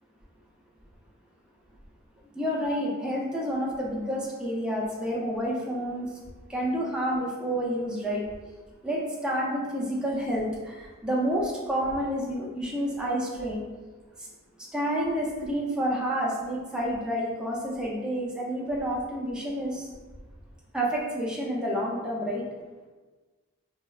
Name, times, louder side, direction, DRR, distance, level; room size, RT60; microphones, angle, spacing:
voice 1, 2.3-6.1 6.5-8.3 8.8-13.6 14.7-19.9 20.7-22.4, equal, 5° right, -4 dB, 0.4 m, -29 dB
3.0 x 2.1 x 2.3 m, 1.3 s
head